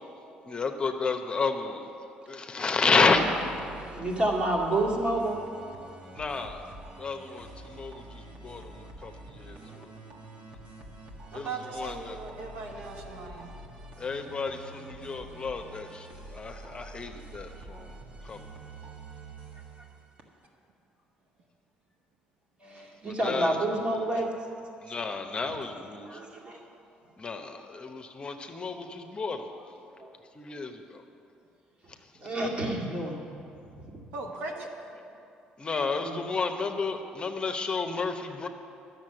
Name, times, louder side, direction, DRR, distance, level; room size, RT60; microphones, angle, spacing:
voice 1, 0.4-1.9 2.3-3.2 6.1-6.6 7.0-9.9 11.3-12.2 14.0-17.9 18.2-18.4 23.1-23.6 23.9-24.0 24.9-26.1 27.2-29.5 30.3-31.0 35.6-38.5, left 4 dB, 35° left, 5 dB, 0.9 m, -31 dB
sound 1, 3.0-20.5, right 2 dB, 55° right, 1.6 m, -47 dB
voice 2, 3.7-5.5 9.4-9.8 19.5-19.9 22.6-24.4 26.0-26.8 29.9-30.1 30.5-30.6 32.2-34.1 35.1-35.2 36.0-36.2, right 1 dB, 40° right, -2 dB, 2.3 m, -30 dB
voice 3, 11.3-13.5 34.1-34.7, right 3 dB, 80° right, 1 dB, 1.2 m, -38 dB
10.5 x 6.8 x 7.8 m, 2.7 s
supercardioid pair, 75°, 3 cm